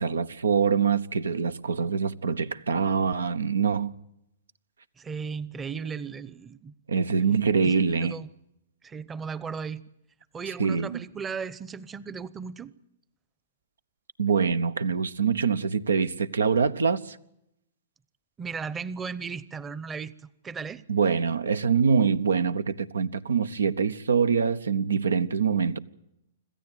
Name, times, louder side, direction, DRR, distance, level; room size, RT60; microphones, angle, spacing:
voice 1, 0.0-3.9 6.9-8.1 10.6-11.1 14.2-17.2 20.9-25.8, right 6 dB, 90° right, 1.0 m, -24 dB
voice 2, 5.0-6.7 7.3-7.4 7.6-8.3 8.8-9.8 10.3-12.7 18.4-20.1 20.4-20.8, right 5 dB, 15° right, 0.8 m, -36 dB
26.5 x 14.0 x 9.3 m
hypercardioid pair, 130°, 0 cm